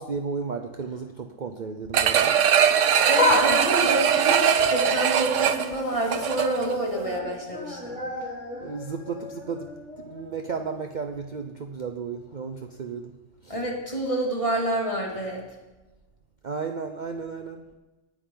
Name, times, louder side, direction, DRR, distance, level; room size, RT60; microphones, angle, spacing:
voice 1, 0.0-2.4 8.6-13.1 13.4-13.5 16.4-17.6, right 5 dB, 45° right, 5 dB, 0.8 m, -34 dB
sound 1, 1.9-6.7 7.1-7.2, right 8 dB, 80° right, 1.1 m, -21 dB
sound 2, 2.9-5.8 6.1-6.6 6.9-10.8 11.2-11.3 12.3-12.4, left 1 dB, 75° left, 2.9 m, -31 dB
voice 2, 3.0-8.0 13.5-15.4, right 1 dB, 25° left, -2 dB, 2.7 m, -28 dB
19.0 x 9.7 x 4.0 m, 1.1 s
omnidirectional pair, 1.3 m